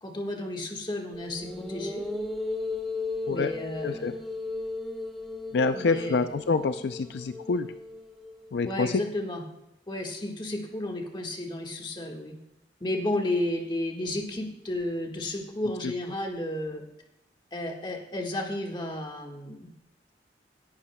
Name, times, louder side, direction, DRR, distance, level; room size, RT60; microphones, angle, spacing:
voice 1, 0.0-2.1 3.3-4.1 5.7-6.2 8.6-9.4 9.9-12.4 12.8-16.8 17.5-19.7, left 1 dB, 25° left, 2 dB, 1.5 m, -32 dB
sound 1, 1.1-8.5, left 2 dB, ahead, 1.2 m, -36 dB
voice 2, 3.8-4.1 5.5-7.7 8.5-9.0 15.8-15.9, left 4 dB, 70° left, 9 dB, 0.4 m, -27 dB
17.0 x 11.5 x 2.2 m, 0.89 s
head